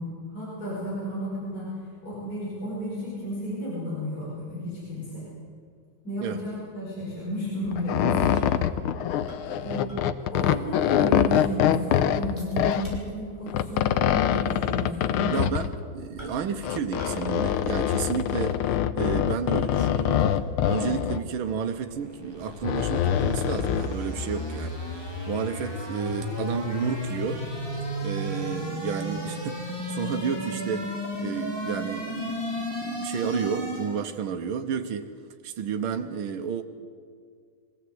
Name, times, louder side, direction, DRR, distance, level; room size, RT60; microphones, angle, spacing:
voice 1, 0.0-1.7 2.0-5.2 6.0-8.5 9.4-9.9 10.3-15.4, equal, 45° left, -7 dB, 6.1 m, -33 dB
sound 1, 7.6-13.0 13.5-15.8 16.6-21.2 22.5-23.9, left 10 dB, 85° left, 1.6 m, -24 dB
sound 2, 8.2-10.5 10.8-10.9 11.3-11.7 12.4-13.4 13.7-13.9 14.6-14.7 16.2-16.6 17.0-17.4 17.6-19.2 19.7-20.7 21.3-24.1 24.4-24.5, right 1 dB, 10° right, 6.5 m, -47 dB
voice 2, 15.3-20.2 20.7-27.4 28.0-30.9 31.2-35.0 35.4-36.6, right 7 dB, 80° right, 5 dB, 1.8 m, -31 dB
sound 3, 21.9-34.1, equal, 10° left, 2.8 m, -33 dB
22.5 x 16.5 x 7.9 m, 2.1 s
omnidirectional pair, 2.3 m